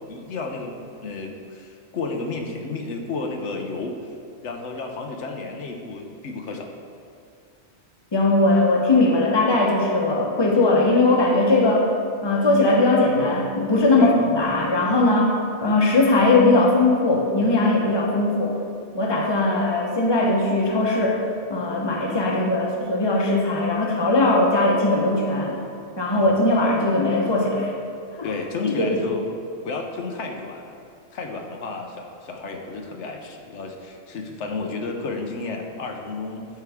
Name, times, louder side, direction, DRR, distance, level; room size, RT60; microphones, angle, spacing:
voice 1, 0.1-0.7 1.0-4.1 4.4-6.8 14.0-14.2 26.2-26.3 28.2-29.3 29.6-30.7 31.1-36.5, left 3 dB, 80° left, 2 dB, 1.1 m, -32 dB
voice 2, 8.1-11.8 12.2-18.6 18.9-21.2 21.5-25.6 26.0-27.7 28.2-28.3 28.6-29.0, left 2 dB, 25° left, -1 dB, 0.9 m, -19 dB
12.5 x 4.7 x 3.5 m, 2.5 s
omnidirectional pair, 1.2 m